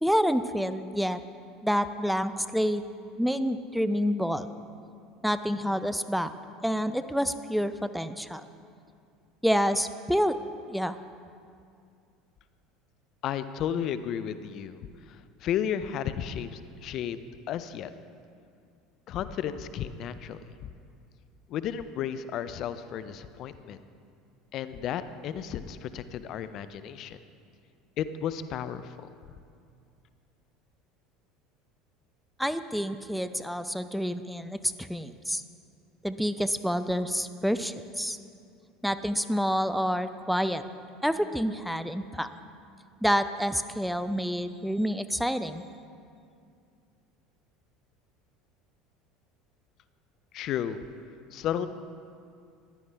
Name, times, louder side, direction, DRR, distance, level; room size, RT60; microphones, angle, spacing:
voice 1, 0.0-1.2 1.6-2.8 3.2-4.5 5.2-6.3 6.6-8.4 9.4-10.4 10.7-11.0 32.4-35.4 36.0-38.2 38.8-40.6 41.0-42.3 43.0-45.6, equal, ahead, 11 dB, 0.5 m, -28 dB
voice 2, 13.2-14.8 15.1-17.2 17.5-17.9 19.1-20.7 21.5-23.8 24.5-27.2 28.0-29.0 50.3-50.8 51.3-51.7, left 9 dB, 55° left, 12 dB, 0.5 m, -33 dB
14.5 x 11.0 x 3.4 m, 2.4 s
hypercardioid pair, 75°, 0 cm